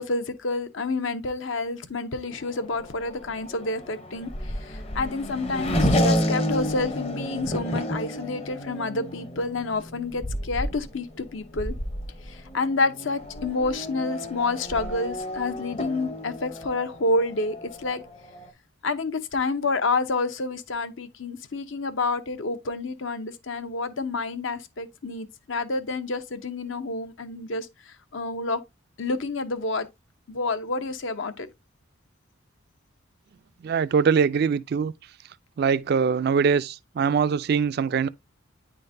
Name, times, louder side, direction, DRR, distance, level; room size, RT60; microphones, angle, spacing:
voice 1, 0.0-4.3 4.6-11.7 12.3-18.0 18.8-28.6 29.0-29.9 30.3-31.5, left 3 dB, 65° left, 0.7 m, -29 dB
Race car auto racing / Accelerating revving vroom, 2.3-18.5, equal, 30° left, 0.7 m, -31 dB
voice 2, 33.6-34.9 35.6-38.1, right 6 dB, 50° right, 0.3 m, -22 dB
9.4 x 3.8 x 2.6 m
head